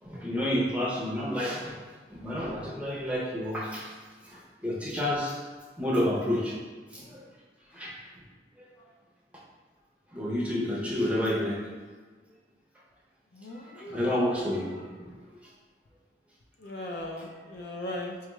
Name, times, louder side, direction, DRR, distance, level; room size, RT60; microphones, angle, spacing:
voice 1, 0.0-1.7 2.1-3.9 4.3-5.4 5.8-6.5 6.9-7.2 7.7-7.9 8.6-8.7 10.1-11.6 13.7-15.1, left 1 dB, 5° right, -5 dB, 0.6 m, -30 dB
voice 2, 13.3-14.8 16.6-18.1, left 1 dB, 60° left, 0 dB, 0.5 m, -39 dB
4.4 x 2.3 x 3.0 m, 1.4 s
head